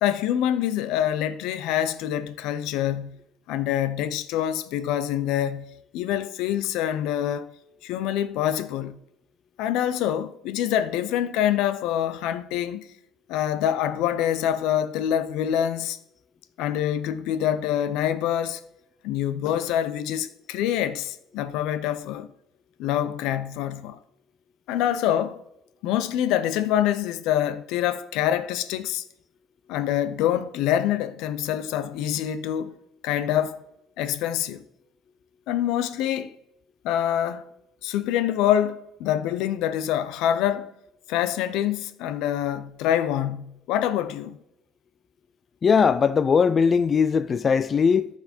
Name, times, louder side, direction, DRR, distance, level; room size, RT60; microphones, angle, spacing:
voice 1, 0.0-3.2 3.5-7.5 7.8-9.0 9.6-12.9 13.3-16.0 16.6-18.6 19.0-22.3 22.8-24.0 24.7-25.4 25.8-29.0 29.7-32.7 33.0-33.6 34.0-34.6 35.5-36.3 36.8-37.5 37.8-40.7 41.1-44.4, left 11 dB, 75° left, 0.6 m, -25 dB
voice 2, 45.6-48.1, left 6 dB, 30° left, 0.3 m, -20 dB
14.0 x 4.7 x 4.4 m
cardioid pair, 155°, 0 cm